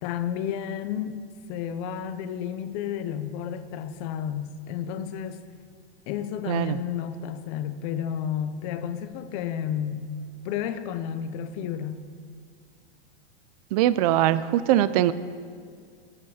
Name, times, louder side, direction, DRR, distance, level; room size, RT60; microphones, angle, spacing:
voice 1, 0.0-1.2 1.5-5.4 6.1-10.1 10.4-12.0, left 9 dB, 35° left, 11 dB, 0.8 m, -31 dB
voice 2, 6.5-6.8 13.7-15.1, right 13 dB, 35° right, 15 dB, 0.4 m, -22 dB
25.0 x 8.7 x 4.9 m, 2.1 s
supercardioid pair, 165°, 33 cm